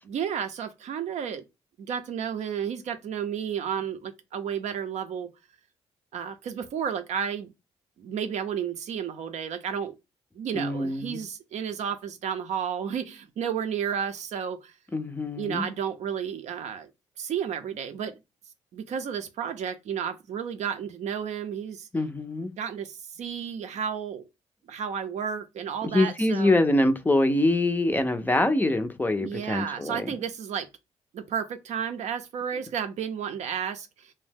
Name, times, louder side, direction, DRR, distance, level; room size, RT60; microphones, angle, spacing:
voice 1, 0.1-1.4 1.8-5.3 6.1-7.5 8.0-9.9 10.3-14.7 15.4-16.9 17.2-18.2 18.7-21.9 22.6-24.3 24.7-26.6 29.2-30.7 31.1-34.1, right 8 dB, 70° right, 0.5 m, -32 dB
voice 2, 10.5-11.2 14.9-15.7 21.9-22.5 25.8-30.1, left 1 dB, 15° left, 0.4 m, -24 dB
2.7 x 2.0 x 3.4 m
cardioid pair, 70°, 12 cm